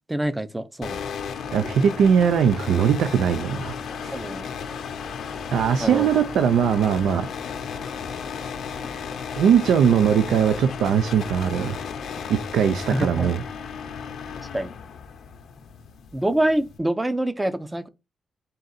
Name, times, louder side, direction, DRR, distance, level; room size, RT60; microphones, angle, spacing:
voice 1, 0.1-1.0 4.1-4.4 5.8-6.1 12.9-13.3 14.5-14.7 16.1-17.9, right 1 dB, 10° right, 0.5 m, -25 dB
sound 1, 0.8-16.8, left 6 dB, 75° left, 0.6 m, -34 dB
voice 2, 1.5-3.7 4.0-4.2 5.5-7.3 9.4-11.8 12.3-13.4, right 8 dB, 90° right, 0.4 m, -20 dB
3.9 x 2.5 x 4.0 m
cardioid pair, 95°, 0 cm